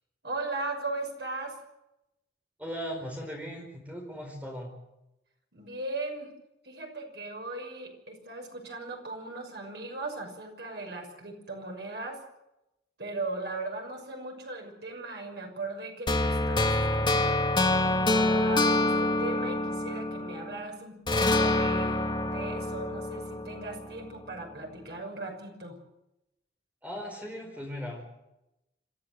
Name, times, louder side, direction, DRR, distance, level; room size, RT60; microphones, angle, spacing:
voice 1, 0.2-1.6 5.5-6.4 6.6-12.2 13.0-17.4 18.1-25.8, right 2 dB, 75° right, 2 dB, 6.2 m, -38 dB
voice 2, 2.6-4.7 26.8-28.0, equal, 10° right, 1 dB, 4.3 m, -38 dB
sound 1, 16.1-20.6 21.1-24.1, left 2 dB, 25° left, 1.6 m, -26 dB
27.0 x 14.5 x 8.0 m, 0.90 s
head